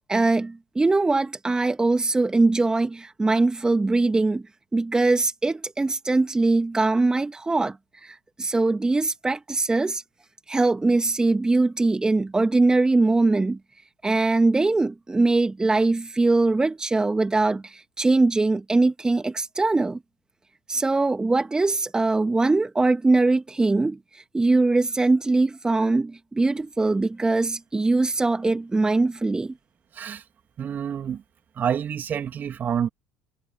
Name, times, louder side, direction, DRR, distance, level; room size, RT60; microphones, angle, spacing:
voice 1, 0.1-4.4 4.7-10.0 10.5-13.6 14.0-20.0 20.7-29.5, right 3 dB, 15° right, 1.8 m, -22 dB
voice 2, 30.6-31.2 31.5-32.9, right 8 dB, 40° right, 3.0 m, -28 dB
hypercardioid pair, 60°, 5 cm